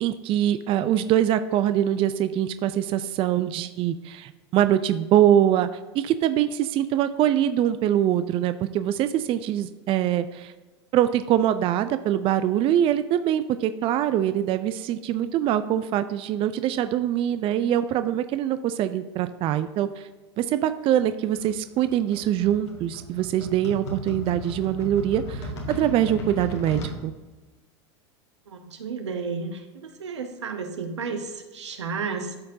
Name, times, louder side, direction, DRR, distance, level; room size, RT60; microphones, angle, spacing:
voice 1, 0.0-5.7 5.9-10.5 10.9-20.1 20.4-27.1, right 11 dB, 40° right, 12 dB, 0.4 m, -23 dB
sound 1, 21.4-27.0, equal, 75° left, 1.8 m, -36 dB
voice 2, 28.5-32.4, right 5 dB, 90° right, 7 dB, 0.9 m, -32 dB
12.5 x 4.3 x 2.7 m, 1.2 s
hypercardioid pair, 95°, 14 cm